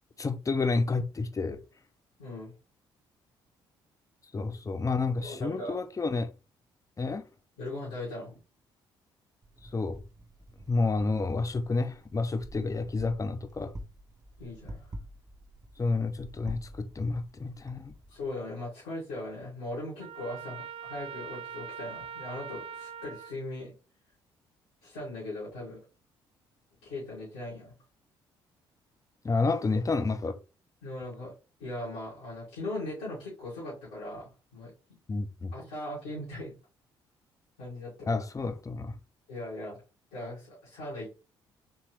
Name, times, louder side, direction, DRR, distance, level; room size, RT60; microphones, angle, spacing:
voice 1, 0.2-1.6 4.3-6.3 7.0-7.3 9.6-10.0 10.7-13.7 15.8-17.9 29.2-30.4 35.1-35.5 38.1-39.0, left 3 dB, 25° left, 0.7 m, -30 dB
voice 2, 2.2-2.5 5.2-5.8 7.6-8.4 14.4-14.9 18.1-23.7 24.8-25.8 26.8-27.7 30.8-31.3 31.6-34.7 35.5-36.6 37.6-38.2 39.3-39.8 40.1-41.2, left 1 dB, 80° left, 2.2 m, -39 dB
Wind, 9.4-18.3, right 1 dB, 30° right, 0.9 m, -47 dB
Trumpet, 20.0-23.4, right 8 dB, 50° right, 0.4 m, -42 dB
4.4 x 3.4 x 3.1 m
hypercardioid pair, 45°, 12 cm